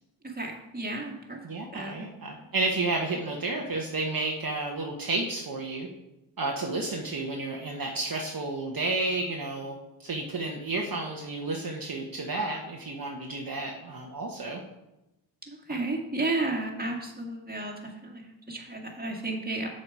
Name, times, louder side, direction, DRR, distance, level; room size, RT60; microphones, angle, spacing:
voice 1, 0.2-1.4 1.7-2.5 15.4-19.7, right 2 dB, 20° right, 1 dB, 1.9 m, -33 dB
voice 2, 1.4-5.9 6.4-14.6, right 2 dB, 45° right, 0 dB, 1.1 m, -31 dB
7.1 x 6.5 x 4.7 m, 0.95 s
cardioid pair, 50°, 47 cm